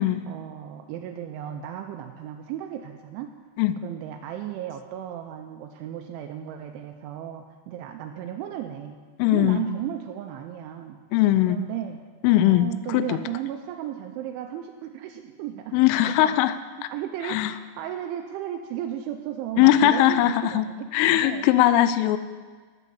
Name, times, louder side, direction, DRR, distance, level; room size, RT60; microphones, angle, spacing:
voice 1, 0.3-3.3 3.8-9.0 9.3-11.0 11.5-12.0 12.4-15.8 16.0-16.4 16.9-21.8, right 10 dB, 85° right, 5 dB, 2.9 m, -35 dB
voice 2, 9.2-9.7 11.1-11.6 12.2-13.2 15.7-16.6 17.3-17.5 19.6-20.7 20.9-22.2, left 13 dB, 90° left, 14 dB, 3.2 m, -20 dB
12.0 x 8.4 x 7.0 m, 1.5 s
omnidirectional pair, 5.6 m